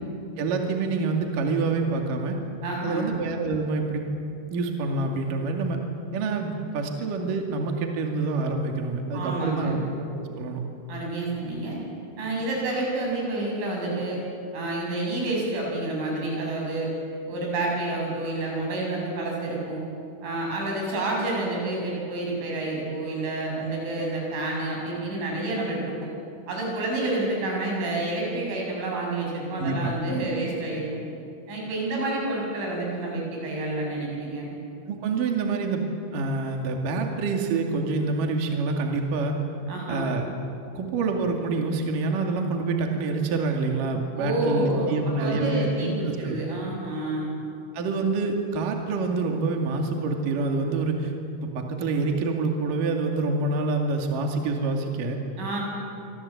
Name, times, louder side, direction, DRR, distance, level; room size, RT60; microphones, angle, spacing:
voice 1, 0.4-2.4 2.8-4.0 4.5-5.8 6.1-10.6 29.6-30.0 34.9-35.8 36.1-39.4 39.9-40.3 40.8-46.4 47.7-55.2, right 3 dB, 50° right, 2 dB, 3.5 m, -27 dB
voice 2, 2.6-3.1 9.1-9.8 10.9-11.8 12.2-14.2 14.5-16.9 17.3-19.8 20.2-25.9 26.5-31.0 31.5-34.5 39.7-40.1 44.2-44.9 45.2-47.3 55.4-55.6, right 2 dB, 90° right, -2 dB, 9.6 m, -29 dB
26.0 x 25.5 x 8.5 m, 2.6 s
omnidirectional pair, 5.4 m